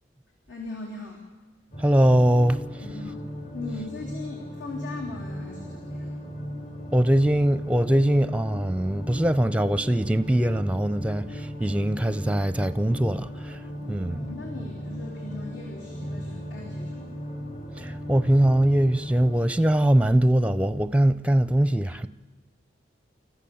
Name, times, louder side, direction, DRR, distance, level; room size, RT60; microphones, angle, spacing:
voice 1, 0.5-1.2 2.8-3.2 3.5-6.1 13.8-17.2, left 3 dB, 80° left, 3.5 m, -39 dB
sound 1, 1.7-19.4, equal, 45° left, 5.1 m, -37 dB
voice 2, 1.8-2.8 6.9-14.2 17.8-22.1, right 1 dB, 5° right, 0.6 m, -22 dB
29.5 x 14.0 x 7.1 m
head